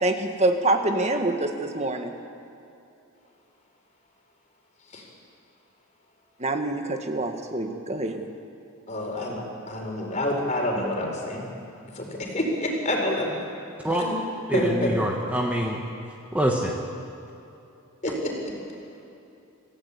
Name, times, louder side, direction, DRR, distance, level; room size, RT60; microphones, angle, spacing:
voice 1, 0.0-2.1 6.4-8.3, right 2 dB, 30° right, 5 dB, 1.8 m, -25 dB
voice 2, 8.9-9.4 9.7-11.4 11.9-13.3 14.0-14.2 14.5-14.9 18.0-18.3, left 1 dB, 35° left, 1 dB, 4.5 m, -27 dB
voice 3, 14.5-15.8 16.3-16.8, equal, 5° right, -1 dB, 1.5 m, -25 dB
27.0 x 15.5 x 8.5 m, 2.8 s
head